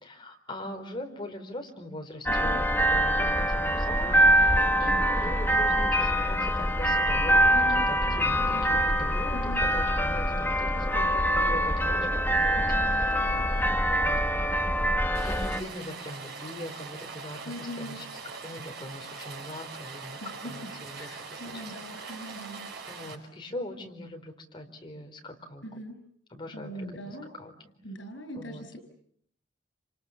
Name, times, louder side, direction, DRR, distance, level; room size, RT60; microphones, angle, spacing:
voice 1, 0.0-4.1 4.8-7.5 7.9-13.3 13.7-14.1 15.2-18.1 18.4-21.4 21.9-22.2 22.8-25.6 26.4-27.5 28.3-28.6, left 1 dB, 25° left, 4 dB, 4.3 m, -41 dB
voice 2, 2.3-2.6 4.7-5.1 7.5-8.8 9.3-9.6 12.5-13.8 17.4-18.0 20.2-20.5 21.0-22.7 25.6-25.9 26.5-27.3 27.8-28.8, equal, 80° left, 9 dB, 6.9 m, -41 dB
sound 1, 2.3-15.6, equal, 10° left, 1.4 m, -24 dB
Wind instrument woodwind instrument, 4.0-11.2, left 4 dB, 60° left, 2.5 m, -46 dB
Rain, 15.1-23.1, right 4 dB, 60° right, 5.6 m, -42 dB
29.0 x 27.5 x 7.3 m, 0.67 s
head